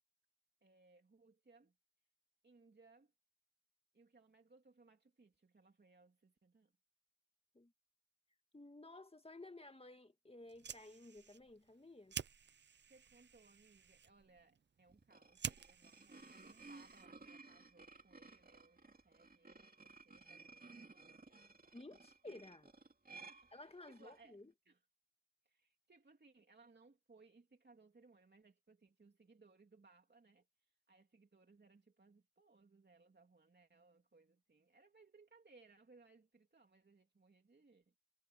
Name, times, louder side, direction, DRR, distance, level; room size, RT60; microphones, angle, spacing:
voice 1, 0.6-1.8 2.4-3.1 3.9-6.7 12.9-21.8 23.3-24.4 24.6-24.8 25.4-37.9, right 3 dB, 75° right, 3.1 m, -67 dB
voice 2, 8.5-12.2 21.7-22.7 23.5-24.5, left 2 dB, 35° left, 2.1 m, -55 dB
Fire, 10.4-17.3, right 7 dB, 90° right, 0.5 m, -51 dB
sound 1, 14.9-24.2, right 3 dB, 55° right, 2.7 m, -58 dB
cardioid pair, 40°, 18 cm